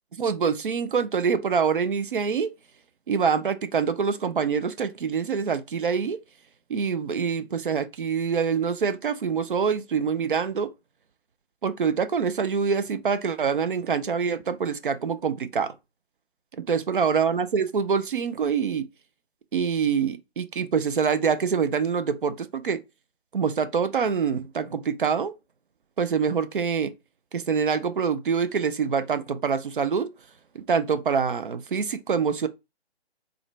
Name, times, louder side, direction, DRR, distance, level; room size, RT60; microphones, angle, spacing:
voice 1, 0.2-2.5 3.1-6.2 6.7-10.7 11.6-15.7 16.5-18.9 19.5-22.8 23.3-25.3 26.0-26.9 27.3-30.1 30.5-32.5, right 6 dB, 55° right, 0.6 m, -25 dB
3.8 x 2.1 x 3.1 m
figure-of-eight pair, 150°, 32 cm